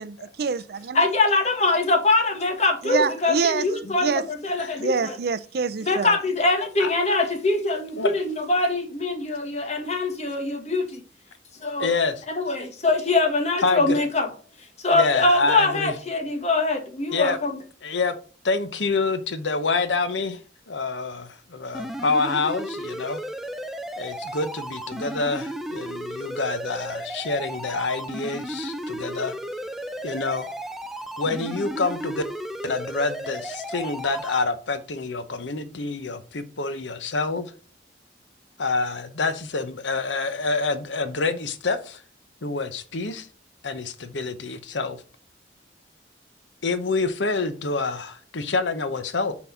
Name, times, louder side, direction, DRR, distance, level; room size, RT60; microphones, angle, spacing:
voice 1, 0.0-1.0 2.8-3.7 4.0-4.2 4.8-6.2, right 5 dB, 55° right, 0.5 m, -26 dB
voice 2, 0.9-5.1 5.8-11.0 11.6-11.9 12.4-14.3 14.8-17.5, left 2 dB, 35° left, 1.5 m, -23 dB
voice 3, 11.8-12.2 13.6-14.0 14.9-15.9 17.1-17.4 17.8-18.1 18.4-20.4 20.7-23.2 24.0-29.3 30.0-30.5 31.2-32.2 32.6-37.4 38.6-42.0 42.4-43.3 43.6-45.0 46.6-49.3, left 3 dB, 80° left, 0.9 m, -27 dB
sound 1, 21.7-34.4, equal, ahead, 0.5 m, -34 dB
5.7 x 4.2 x 5.8 m
head